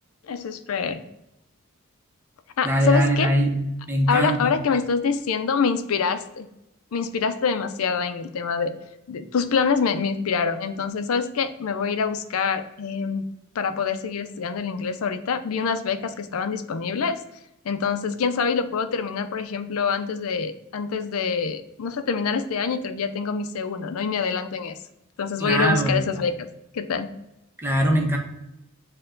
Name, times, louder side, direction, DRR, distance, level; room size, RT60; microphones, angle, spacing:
voice 1, 0.2-1.0 2.6-3.3 4.1-6.5 6.9-8.7 9.1-13.2 13.6-17.2 17.6-24.8 25.2-26.5 26.7-27.1, left 5 dB, 80° left, 10 dB, 0.4 m, -25 dB
voice 2, 2.6-4.5 25.4-26.0 27.6-28.2, right 1 dB, 10° right, 1 dB, 0.7 m, -22 dB
6.4 x 2.2 x 3.7 m, 0.87 s
head